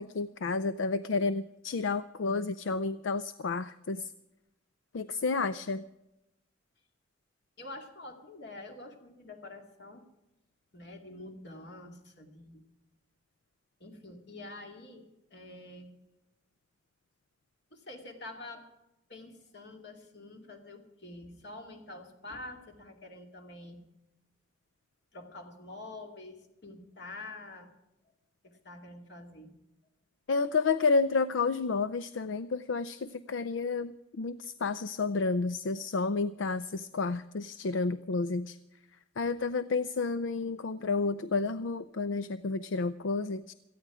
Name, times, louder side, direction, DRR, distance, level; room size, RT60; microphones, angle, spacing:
voice 1, 0.0-4.1 4.9-5.8 30.3-38.6 39.2-43.5, left 4 dB, 75° left, 14 dB, 0.5 m, -30 dB
voice 2, 7.6-10.0 10.7-12.7 13.8-15.9 17.7-18.7 19.1-23.8 25.1-27.7 28.4-29.5, left 2 dB, 60° left, 3 dB, 2.4 m, -47 dB
18.0 x 14.0 x 4.9 m, 0.91 s
head